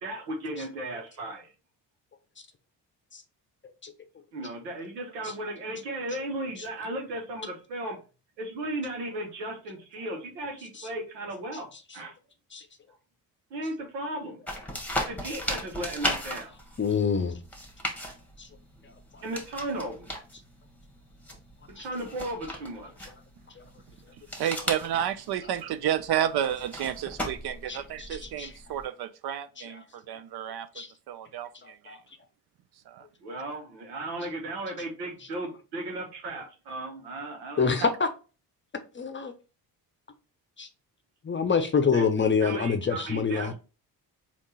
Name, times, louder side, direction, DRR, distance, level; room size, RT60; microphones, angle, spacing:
voice 1, 0.0-1.5 4.3-8.0 8.4-12.1 13.5-14.4 15.1-16.6 19.2-20.2 21.7-22.9 33.2-37.9 41.9-42.0 42.4-43.5, right 1 dB, 90° right, 1.0 m, -35 dB
sound 1, 14.5-28.9, equal, 5° left, 1.3 m, -37 dB
voice 2, 16.8-17.4 18.4-18.5 21.8-21.9 23.6-23.7 27.7-27.8 28.4-28.5 30.8-30.9 31.9-32.0 37.6-38.1 38.9-39.3 40.6-40.7 41.2-43.5, left 5 dB, 25° left, 0.7 m, -25 dB
voice 3, 24.1-32.0 32.9-33.1, right 10 dB, 55° right, 0.5 m, -31 dB
3.6 x 2.5 x 4.1 m
hypercardioid pair, 50°, 49 cm